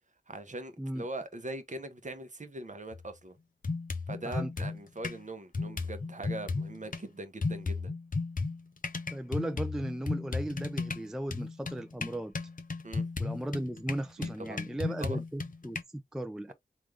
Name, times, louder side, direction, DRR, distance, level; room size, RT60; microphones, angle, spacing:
voice 1, 0.3-3.4 4.1-7.9 12.8-13.1 14.2-14.6 14.9-15.2 16.5-16.6, right 2 dB, 45° right, 0.8 m, -41 dB
sound 1, 2.9-3.1 3.6-5.2 5.5-7.0 7.4-15.8, left 3 dB, 50° left, 0.6 m, -35 dB
voice 2, 9.1-12.3 13.2-16.5, right 1 dB, 5° right, 0.3 m, -36 dB
3.5 x 2.4 x 3.2 m
cardioid pair, 40°, 18 cm